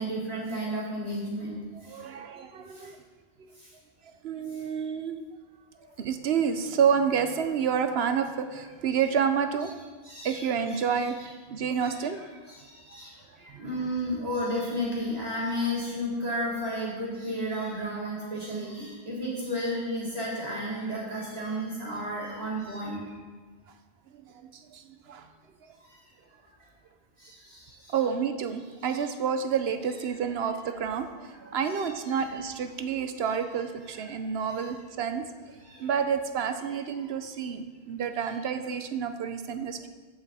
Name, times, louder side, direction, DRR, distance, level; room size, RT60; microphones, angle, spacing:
voice 1, 0.0-2.0 2.7-2.9 3.5-3.7 4.5-4.6 5.7-5.9 10.0-11.3 11.8-12.1 12.5-23.1 25.8-26.0 26.6-26.7 27.2-28.0 28.8-28.9 31.7-32.3 33.8-34.2 34.6-34.7 35.6-35.9, equal, 35° right, -7 dB, 3.6 m, -33 dB
voice 2, 1.9-3.0 3.4-3.5 4.0-5.2 6.0-9.7 10.2-12.3 12.9-13.0 13.5-13.6 24.1-25.3 27.9-39.9, right 7 dB, 75° right, 9 dB, 0.9 m, -29 dB
14.0 x 6.0 x 4.1 m, 1.3 s
omnidirectional pair, 1.1 m